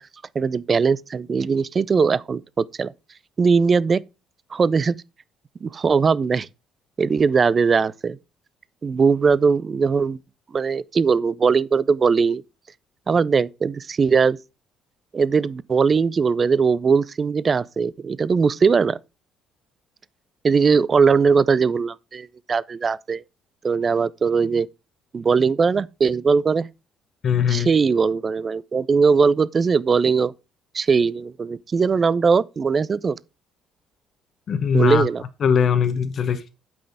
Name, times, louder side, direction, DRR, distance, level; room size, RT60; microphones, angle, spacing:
voice 1, 0.3-2.9 3.4-4.0 4.5-4.9 5.6-6.5 7.0-8.2 8.8-10.2 10.5-12.4 13.1-14.4 15.1-19.0 20.4-23.2 23.6-24.7 25.1-26.7 27.5-30.3 30.7-33.2 34.7-35.2, right 5 dB, 35° right, 0.5 m, -20 dB
voice 2, 27.2-27.7 34.5-35.1 35.4-36.5, left 7 dB, 50° left, 1.1 m, -20 dB
8.6 x 5.9 x 4.9 m
figure-of-eight pair, 50°, 0 cm